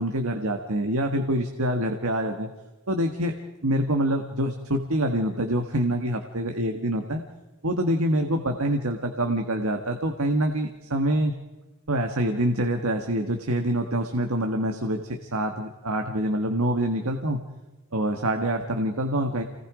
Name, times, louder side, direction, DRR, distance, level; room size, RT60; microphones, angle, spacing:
voice 1, 0.0-2.5 2.9-3.3 3.6-7.2 7.6-11.3 11.9-17.4 17.9-19.4, right 1 dB, 75° right, 5 dB, 1.7 m, -26 dB
28.5 x 19.5 x 5.0 m, 1.1 s
head